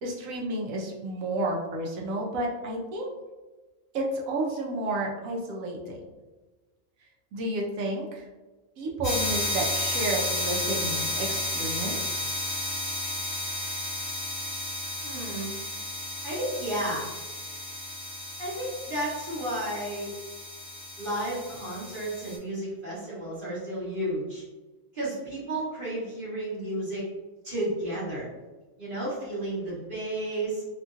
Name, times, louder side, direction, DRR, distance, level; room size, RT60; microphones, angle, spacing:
voice 1, 0.0-3.1 3.9-6.0 7.3-8.3 8.8-12.3, right 1 dB, 80° right, -1 dB, 1.0 m, -31 dB
sound 1, 9.0-22.4, left 1 dB, 25° left, 0.7 m, -33 dB
voice 2, 15.0-15.5 16.2-17.1 18.4-20.1 21.0-24.4 24.9-27.1 27.4-28.3 28.8-30.6, right 1 dB, 45° right, -8 dB, 1.0 m, -32 dB
2.8 x 2.5 x 2.5 m, 1.2 s
omnidirectional pair, 1.4 m